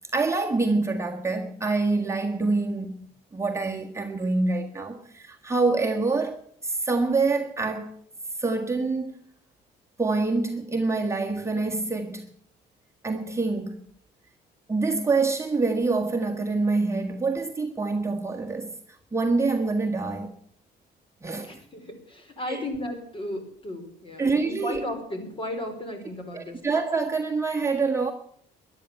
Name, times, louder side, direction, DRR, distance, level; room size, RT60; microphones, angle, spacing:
voice 1, 0.1-3.0 3.3-7.9 8.4-9.1 10.0-12.2 13.0-13.8 14.7-18.7 19.1-20.3 21.2-21.5 22.5-22.6 24.2-24.8 26.3-28.1, right 3 dB, 15° right, 1.6 m, -26 dB
voice 2, 21.4-26.6, left 1 dB, 30° left, 4.8 m, -35 dB
14.0 x 11.0 x 9.1 m
cardioid pair, 110°, 17 cm